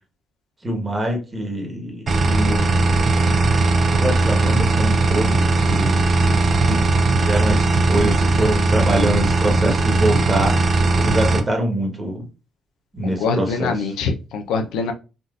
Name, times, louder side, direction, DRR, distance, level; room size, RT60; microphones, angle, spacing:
voice 1, 0.6-2.9 3.9-6.0 6.7-6.8 7.1-10.6 11.0-12.3 12.9-13.9, right 1 dB, 25° right, 2 dB, 1.3 m, -24 dB
sound 1, 2.1-11.4, right 3 dB, 45° right, 0.6 m, -18 dB
voice 2, 13.0-14.9, left 4 dB, 85° left, 5 dB, 0.6 m, -24 dB
3.7 x 2.4 x 2.4 m, 0.30 s
cardioid pair, 90°, 0 cm